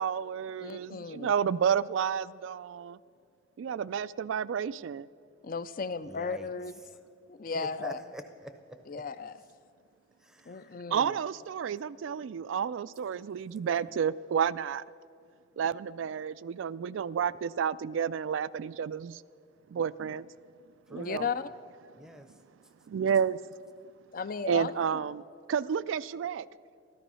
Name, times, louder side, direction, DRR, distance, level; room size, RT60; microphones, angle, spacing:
voice 1, 0.0-3.0 3.6-5.1 10.9-14.8 15.6-19.2 19.7-20.3 20.9-21.3 22.9-23.4 24.5-26.5, right 7 dB, 80° right, 17 dB, 0.3 m, -31 dB
voice 2, 0.6-1.3 5.4-6.8 7.3-8.0 8.9-9.4 10.5-11.2 20.9-21.5 24.1-25.0, left 5 dB, 45° left, 14 dB, 0.5 m, -35 dB
voice 3, 6.0-6.5 7.5-9.0 10.2-10.8 20.9-21.3 22.0-22.3, right 1 dB, 5° right, 8 dB, 0.6 m, -45 dB
14.0 x 13.5 x 5.5 m, 2.2 s
head